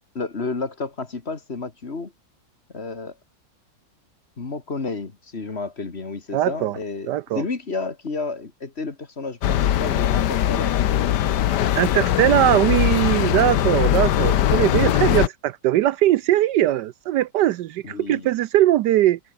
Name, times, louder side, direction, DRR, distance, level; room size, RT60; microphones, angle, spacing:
voice 1, 0.1-2.1 2.7-3.2 4.4-10.8 17.8-18.3, left 3 dB, 35° left, 2.1 m, -31 dB
voice 2, 6.3-6.8 7.1-7.4 11.8-19.2, right 13 dB, 75° right, 1.2 m, -20 dB
sound 1, 9.4-15.3, left 11 dB, 70° left, 1.5 m, -20 dB
omnidirectional pair, 2.0 m